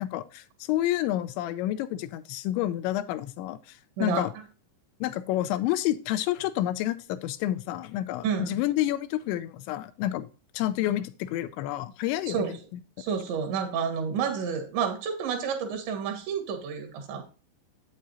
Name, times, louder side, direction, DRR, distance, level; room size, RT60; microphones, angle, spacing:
voice 1, 0.0-4.3 5.0-10.3 10.5-12.5, left 14 dB, 85° left, 12 dB, 2.8 m, -29 dB
voice 2, 4.0-4.3 8.2-8.6 12.3-12.6 13.0-17.2, right 6 dB, 75° right, 5 dB, 3.9 m, -30 dB
8.8 x 8.4 x 2.6 m, 0.36 s
omnidirectional pair, 5.3 m